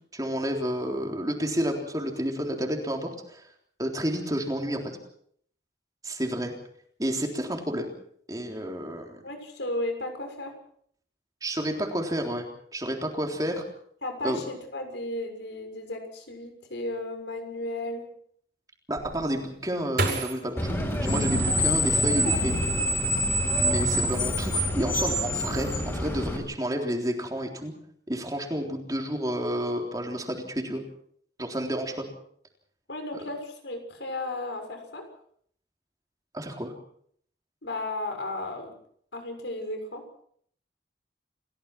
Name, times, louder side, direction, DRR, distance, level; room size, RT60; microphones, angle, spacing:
voice 1, 0.1-3.4 3.8-4.9 6.0-6.5 7.0-7.9 8.3-9.2 11.4-12.5 12.7-13.6 14.2-14.4 18.9-20.8 21.0-22.6 23.6-27.7 28.1-30.8 31.4-32.1 36.3-36.7, equal, 20° right, 2 dB, 3.7 m, -30 dB
voice 2, 9.2-10.5 14.0-18.0 32.9-35.0 37.6-38.7 39.1-40.0, left 2 dB, 90° left, 5 dB, 6.5 m, -34 dB
sound 1, 19.0-22.0 22.6-23.3 23.6-24.1, right 2 dB, 60° right, 6.4 m, -33 dB
Screech, 20.6-26.4, equal, 15° left, 5.9 m, -26 dB
29.0 x 16.5 x 6.1 m, 0.63 s
head